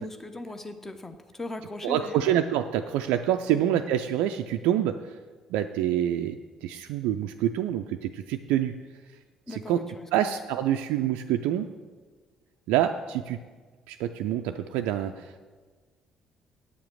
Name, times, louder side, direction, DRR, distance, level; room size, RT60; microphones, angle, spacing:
voice 1, 0.0-2.2 3.5-3.6 9.5-10.4, left 2 dB, 20° left, 8 dB, 1.0 m, -39 dB
voice 2, 1.8-5.2 5.5-8.7 9.5-9.8 10.1-11.7 12.7-13.4 13.9-15.4, right 11 dB, 65° right, 6 dB, 0.4 m, -27 dB
8.3 x 7.4 x 6.3 m, 1.4 s
figure-of-eight pair, 45°, 2 cm